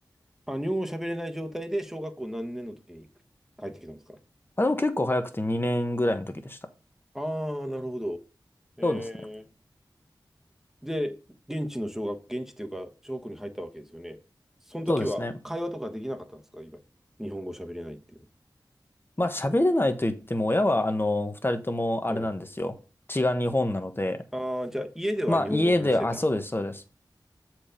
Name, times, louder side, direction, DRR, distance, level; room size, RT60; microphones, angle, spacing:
voice 1, 0.5-3.1 3.6-4.2 7.1-8.2 8.8-9.5 10.8-11.2 11.5-14.2 14.6-16.8 17.2-18.3 22.1-22.3 24.3-26.2, equal, 5° right, 1.3 m, -33 dB
voice 2, 4.6-6.6 8.8-9.0 14.9-15.3 19.2-22.8 23.1-24.2 25.3-26.9, left 1 dB, 25° left, 1.2 m, -26 dB
7.2 x 4.6 x 5.2 m
cardioid pair, 45°, 8 cm